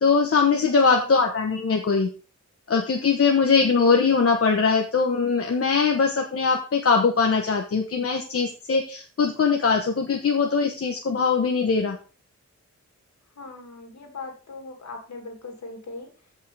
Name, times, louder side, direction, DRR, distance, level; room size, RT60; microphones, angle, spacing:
voice 1, 0.0-2.1 2.7-12.0, left 5 dB, 50° left, 2 dB, 1.2 m, -21 dB
voice 2, 0.9-1.2 13.3-16.1, left 3 dB, 65° left, 3 dB, 2.6 m, -39 dB
15.0 x 5.6 x 3.5 m, 0.37 s
wide cardioid pair, 155°, 29 cm